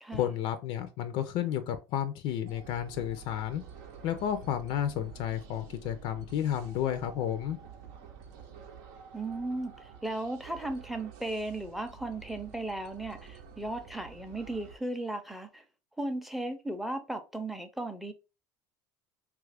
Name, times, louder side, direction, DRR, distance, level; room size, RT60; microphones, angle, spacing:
voice 1, 0.1-3.6 4.0-7.6, left 10 dB, 65° left, 0.4 m, -32 dB
sound 1, 2.4-14.8, right 7 dB, 85° right, 0.7 m, -49 dB
voice 2, 9.1-15.6 16.0-18.1, right 2 dB, ahead, 0.5 m, -36 dB
2.9 x 2.4 x 3.3 m
cardioid pair, 125°, 9 cm